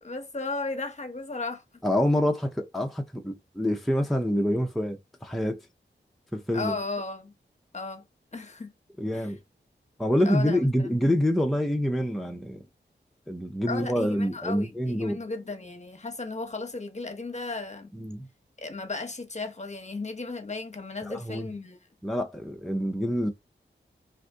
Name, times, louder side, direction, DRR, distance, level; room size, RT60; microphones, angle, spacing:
voice 1, 0.0-1.6 6.5-7.3 7.7-8.0 8.3-8.7 9.1-9.3 10.3-10.9 13.7-17.9 18.6-21.8, left 3 dB, 35° left, 0.9 m, -35 dB
voice 2, 1.8-5.6 6.3-6.7 9.0-9.4 10.0-12.6 13.3-15.2 17.9-18.3 21.0-21.5 22.0-23.3, equal, ahead, 0.6 m, -26 dB
2.6 x 2.5 x 3.5 m
cardioid pair, 45°, 20 cm